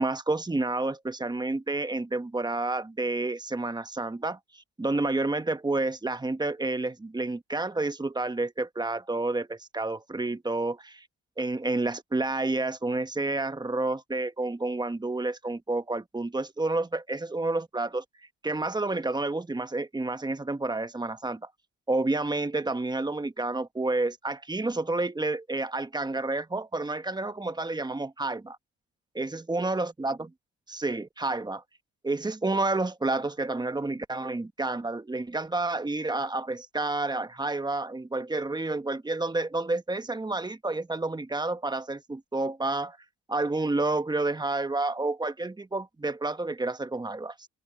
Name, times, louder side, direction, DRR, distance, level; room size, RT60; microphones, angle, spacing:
voice 1, 0.0-11.1 11.4-18.0 18.4-21.4 21.9-28.6 29.1-30.3 30.7-31.6 32.0-43.0 43.3-47.5, right 2 dB, 15° right, 1.1 m, -30 dB
cardioid pair, 90°, 30 cm